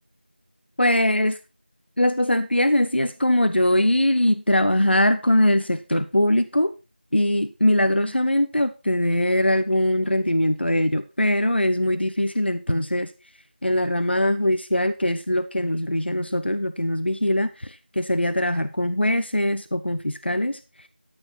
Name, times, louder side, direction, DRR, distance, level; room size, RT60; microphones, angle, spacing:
voice 1, 0.8-1.4 2.0-6.7 7.1-13.1 13.6-20.9, left 1 dB, 85° left, 10 dB, 1.2 m, -22 dB
14.0 x 6.6 x 4.6 m, 0.29 s
figure-of-eight pair, 175°, 6 cm